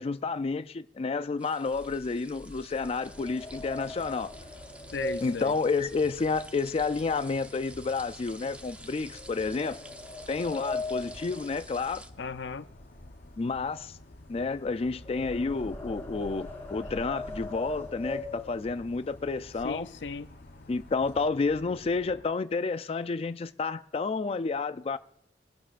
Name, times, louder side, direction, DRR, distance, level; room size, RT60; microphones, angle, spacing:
voice 1, 0.0-4.3 5.2-9.8 10.3-12.0 13.4-14.0 14.3-19.9 20.7-25.0, left 4 dB, 35° left, 0.4 m, -30 dB
sound 1, 1.4-12.1, right 1 dB, 10° right, 0.7 m, -50 dB
sound 2, 1.7-7.0 7.3-7.7 8.2-8.3 9.1-12.4 12.7-19.0 19.6-19.7 20.0-20.2 20.5-21.2, left 2 dB, 15° left, 5.1 m, -40 dB
sound 3, 3.0-22.2, left 1 dB, 60° left, 0.9 m, -51 dB
voice 2, 4.9-5.5 12.2-12.7 19.6-20.3, left 4 dB, 90° left, 0.5 m, -36 dB
22.5 x 11.5 x 2.5 m
head